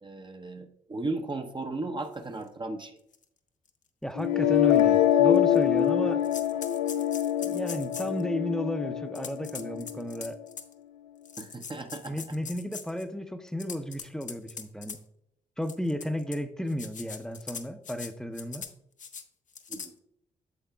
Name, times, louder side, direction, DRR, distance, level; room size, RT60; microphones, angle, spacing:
voice 1, 0.0-3.0 11.4-12.2 19.7-20.0, right 2 dB, 25° right, 5 dB, 0.8 m, -36 dB
sound 1, 2.4-2.5 3.1-3.2 3.7-3.8 4.7-4.8 5.3-5.9 6.2-8.2 9.1-10.7 11.2-13.0 13.5-15.0 15.6-16.4 16.7-18.1 18.3-18.7 19.0-19.2 19.5-19.9, left 6 dB, 45° left, 0.8 m, -42 dB
voice 2, 4.0-6.2 7.4-10.4 12.1-15.0 15.6-18.6, equal, 5° left, 9 dB, 0.8 m, -33 dB
sound 2, 4.2-10.1, left 10 dB, 85° left, 0.4 m, -25 dB
8.2 x 7.3 x 2.3 m, 0.75 s
hypercardioid pair, 45°, 17 cm